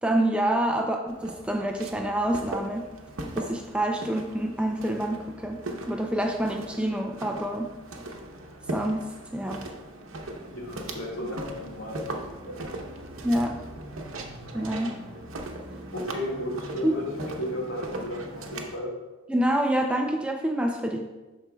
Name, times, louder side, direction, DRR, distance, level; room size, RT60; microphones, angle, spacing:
voice 1, 0.0-2.9 3.4-7.7 8.7-9.6 13.2-13.5 14.5-15.0 16.8-16.9 19.3-21.0, right 1 dB, 5° right, 2 dB, 0.4 m, -27 dB
Walk footsteps, 1.1-18.8, right 1 dB, 75° right, 0.8 m, -39 dB
voice 2, 10.5-12.2 12.5-12.7 15.9-18.9, left 1 dB, 80° left, -3 dB, 1.8 m, -34 dB
12.5 x 4.4 x 2.3 m, 1.2 s
head